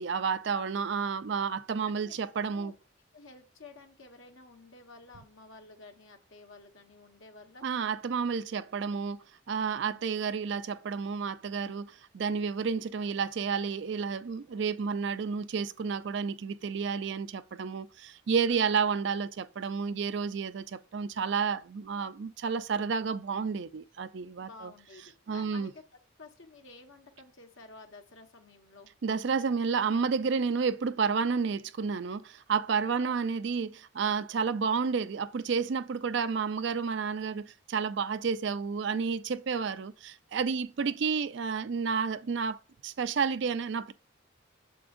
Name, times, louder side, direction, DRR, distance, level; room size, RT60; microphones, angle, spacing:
voice 1, 0.0-2.7 7.6-24.7 25.3-25.7 29.0-43.9, right 5 dB, 60° right, 0.4 m, -31 dB
voice 2, 3.1-7.6 9.8-10.0 18.5-18.8 24.4-25.7 26.2-28.9 33.0-33.1 40.8-41.3, left 3 dB, 70° left, 1.3 m, -52 dB
8.3 x 6.9 x 2.6 m
head